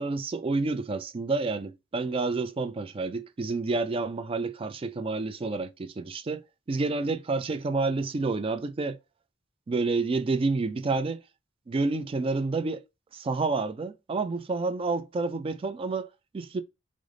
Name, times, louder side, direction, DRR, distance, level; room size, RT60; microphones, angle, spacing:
voice 1, 0.0-6.4 6.7-9.0 9.7-11.2 11.7-12.8 13.1-16.6, right 3 dB, 30° right, 0.3 m, -29 dB
3.3 x 2.0 x 3.6 m
head